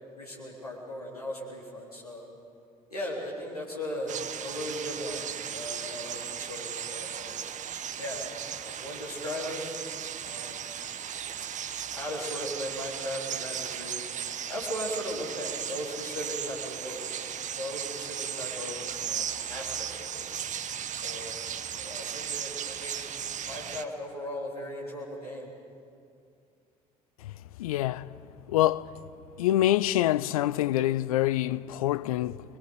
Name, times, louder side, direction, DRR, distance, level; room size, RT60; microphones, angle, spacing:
voice 1, 0.2-2.3 2.9-5.2 5.5-7.4 8.0-8.3 8.6-9.8 10.2-10.6 11.9-14.0 14.5-17.3 17.6-20.3 20.9-21.4 21.7-23.1 23.5-25.5, equal, 90° left, 3.7 m, -37 dB
sound 1, 4.1-23.8, right 9 dB, 40° right, 1.1 m, -36 dB
voice 2, 27.6-28.2 28.5-28.9 29.4-32.4, left 14 dB, 70° left, 0.5 m, -26 dB
25.0 x 22.0 x 7.9 m
figure-of-eight pair, 50°, 19 cm